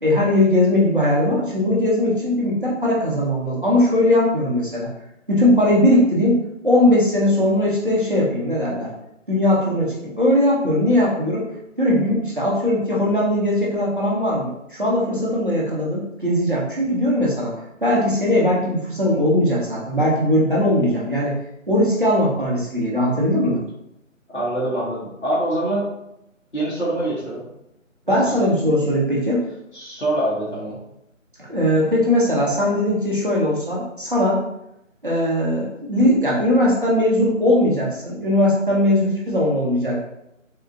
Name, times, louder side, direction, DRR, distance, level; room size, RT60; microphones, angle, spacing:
voice 1, 0.0-4.9 5.3-6.4 6.6-8.9 9.3-11.4 11.8-17.5 17.8-21.3 21.7-23.6 28.1-29.4 31.4-34.4 35.0-40.0, left 1 dB, 40° right, -6 dB, 0.8 m, -19 dB
voice 2, 24.3-25.8 26.5-27.4 28.1-28.5 29.7-30.8, right 1 dB, 60° left, -8 dB, 1.3 m, -25 dB
3.7 x 2.3 x 3.5 m, 0.85 s
figure-of-eight pair, 165°, 40 cm